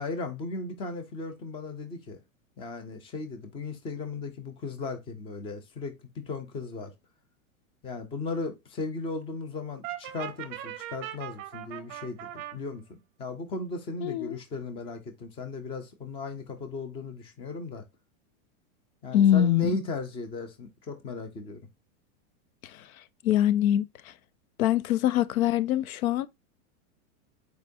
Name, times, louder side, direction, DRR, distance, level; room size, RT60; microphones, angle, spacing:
voice 1, 0.0-2.2 2.6-6.9 7.8-17.8 19.0-21.7, left 3 dB, 15° left, 0.6 m, -36 dB
Brass instrument, 9.8-12.6, right 13 dB, 25° right, 0.8 m, -39 dB
voice 2, 14.0-14.4 19.1-19.7 22.6-24.1 24.6-26.3, left 11 dB, 75° left, 0.6 m, -24 dB
7.4 x 4.6 x 2.7 m
supercardioid pair, 165°, 43 cm